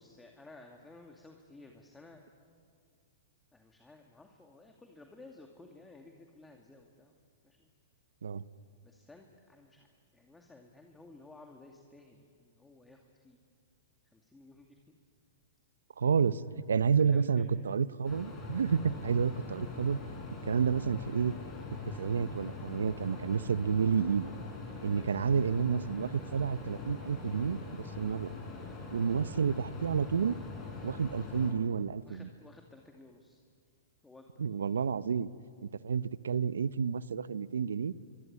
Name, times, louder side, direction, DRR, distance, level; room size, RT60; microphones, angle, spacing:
voice 1, 0.0-2.2 3.5-7.1 7.4-7.7 8.8-9.9 10.1-13.4 14.0-14.8 17.1-17.8 24.9-25.2 32.0-33.4 34.0-34.3, left 2 dB, 10° left, 2 dB, 2.4 m, -55 dB
voice 2, 16.0-16.4 16.7-20.0 20.5-21.3 22.0-24.3 24.8-28.3 28.9-30.4 30.8-32.3 34.4-35.3 35.8-37.9, right 6 dB, 85° right, 17 dB, 0.8 m, -30 dB
sound 1, 18.0-31.5, left 3 dB, 25° left, 7.8 m, -43 dB
25.5 x 24.0 x 9.6 m, 2.2 s
hypercardioid pair, 120°, 0 cm